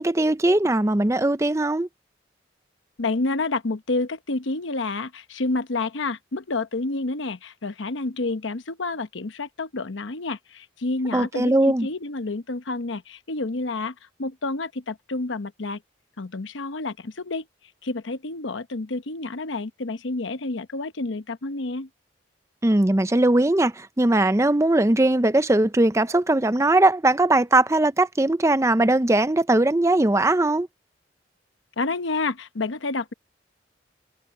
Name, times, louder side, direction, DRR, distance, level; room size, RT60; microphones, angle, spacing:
voice 1, 0.0-1.9 11.1-11.9 22.6-30.7, right 2 dB, 15° right, 0.5 m, -20 dB
voice 2, 3.0-15.8 16.2-17.5 17.8-21.9 31.8-33.1, left 3 dB, 90° left, 1.0 m, -29 dB
head